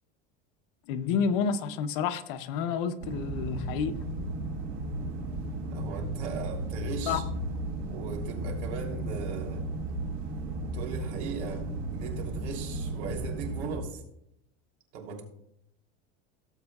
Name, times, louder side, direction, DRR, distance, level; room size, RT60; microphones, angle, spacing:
voice 1, 0.9-3.9 7.1-7.2, left 6 dB, 55° left, 10 dB, 0.8 m, -29 dB
sound 1, 3.0-13.8, right 2 dB, 70° right, 2.1 m, -34 dB
voice 2, 5.7-7.2 7.8-9.7 10.7-14.0 14.9-15.2, right 5 dB, 85° right, 1 dB, 3.2 m, -38 dB
17.5 x 8.0 x 2.3 m, 0.77 s
cardioid pair, 180°, 33 cm